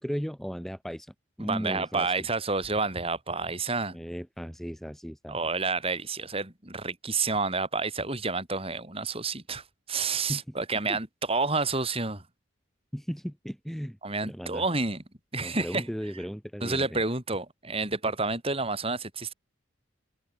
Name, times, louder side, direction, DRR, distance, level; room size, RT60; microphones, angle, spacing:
voice 1, 0.0-2.1 3.9-5.4 10.3-10.4 10.9-11.0 12.9-14.0 14.2-14.6 15.4-17.0, equal, ahead, 1.6 m, -36 dB
voice 2, 1.4-4.0 5.3-12.2 14.0-15.0 15.3-15.8 16.6-19.3, right 3 dB, 30° right, 4.7 m, -29 dB
open air
head